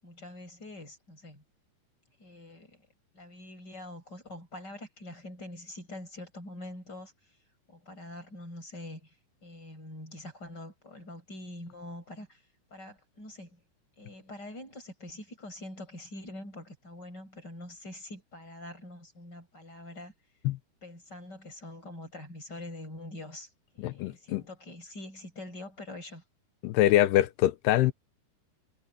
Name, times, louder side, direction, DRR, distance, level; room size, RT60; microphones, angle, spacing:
voice 1, 0.0-1.4 2.2-2.8 3.1-7.1 7.7-9.1 9.4-12.4 12.7-13.6 14.0-20.1 20.8-23.5 23.7-26.2, left 1 dB, 25° left, 7.9 m, -44 dB
voice 2, 23.8-24.4 26.6-27.9, left 14 dB, 80° left, 2.8 m, -24 dB
omnidirectional pair, 4.8 m